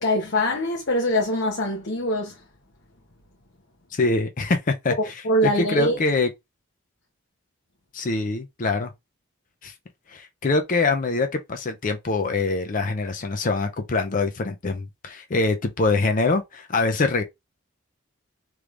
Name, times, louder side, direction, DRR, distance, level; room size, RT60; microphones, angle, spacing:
voice 1, 0.0-2.4 5.2-6.0, left 1 dB, 55° left, 0.9 m, -23 dB
voice 2, 3.9-4.9 5.4-6.3 7.9-8.9 9.6-9.7 10.1-17.2, left 3 dB, 40° left, 0.5 m, -24 dB
3.3 x 3.1 x 2.4 m
head